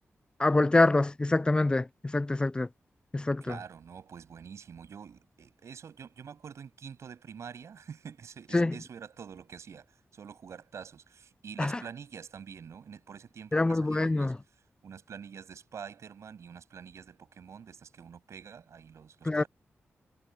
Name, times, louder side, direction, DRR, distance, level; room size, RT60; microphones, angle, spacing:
voice 1, 0.4-2.7 3.1-3.6 8.5-8.7 11.6-11.7 13.5-14.4 19.3-19.4, left 2 dB, 20° left, 0.3 m, -25 dB
voice 2, 3.4-14.3 14.8-19.5, right 7 dB, 80° right, 7.8 m, -46 dB
cardioid pair, 80°, 5 cm